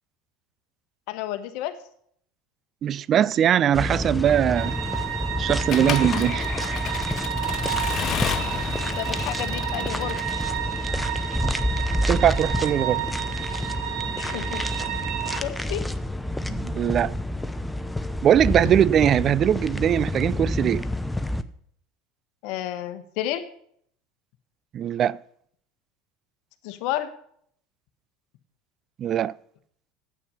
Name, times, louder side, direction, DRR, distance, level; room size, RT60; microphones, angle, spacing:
voice 1, 1.1-1.7 7.6-7.8 9.0-10.2 14.2-14.6 15.4-15.8 22.4-23.4 26.6-27.1, left 13 dB, 65° left, 1.2 m, -31 dB
voice 2, 2.8-4.8 5.4-6.5 12.1-13.1 16.5-17.1 18.2-20.9 24.7-25.2 29.0-29.3, right 10 dB, 45° right, 0.3 m, -21 dB
sound 1, 3.7-21.4, left 1 dB, 5° left, 0.7 m, -29 dB
sound 2, 4.5-15.4, right 11 dB, 60° right, 1.6 m, -31 dB
Accelerating revving vroom / Mechanisms, 5.7-10.6, left 11 dB, 45° left, 0.6 m, -32 dB
9.8 x 8.7 x 5.6 m
hypercardioid pair, 80°, 0 cm